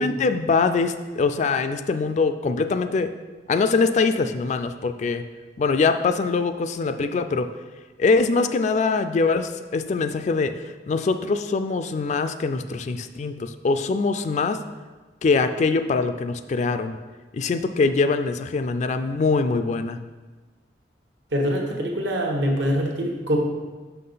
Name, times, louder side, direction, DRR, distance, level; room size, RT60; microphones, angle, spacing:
voice 1, 0.0-3.1 3.5-5.2 5.6-7.5 8.0-10.5 10.9-14.6 15.2-17.0 17.3-20.0, left 4 dB, 40° left, 9 dB, 0.3 m, -23 dB
voice 2, 21.3-23.4, equal, 75° right, 0 dB, 1.1 m, -24 dB
5.8 x 5.6 x 3.9 m, 1.3 s
head